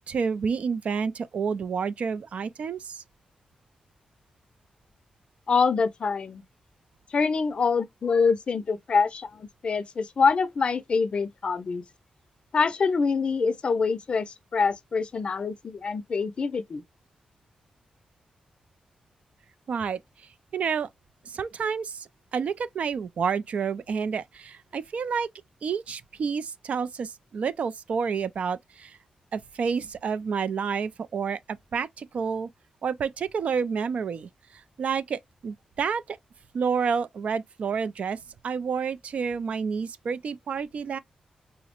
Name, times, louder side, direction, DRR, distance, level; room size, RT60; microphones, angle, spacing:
voice 1, 0.1-3.0 19.7-20.0 20.5-20.9 21.3-25.3 25.6-29.0 29.3-32.5 32.8-36.2 36.5-38.2 38.4-41.0, right 6 dB, 60° right, 0.3 m, -29 dB
voice 2, 5.5-6.4 7.1-11.8 12.5-16.8, left 5 dB, 45° left, 0.4 m, -25 dB
4.7 x 2.0 x 2.8 m
wide cardioid pair, 145°, 2 cm